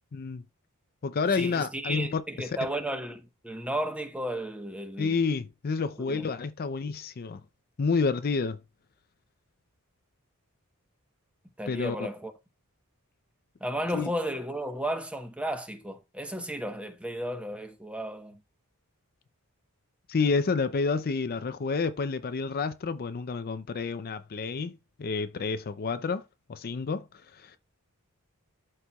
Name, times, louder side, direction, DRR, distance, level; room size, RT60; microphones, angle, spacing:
voice 1, 0.1-0.4 1.0-2.5 5.0-7.4 7.8-8.6 11.7-12.0 13.9-14.1 20.1-26.2 26.5-27.1 27.3-27.6, left 4 dB, 45° left, 0.5 m, -29 dB
voice 2, 1.4-5.2 6.0-6.3 11.6-12.3 13.6-18.4, right 1 dB, 5° right, 1.0 m, -34 dB
12.5 x 4.3 x 2.3 m
head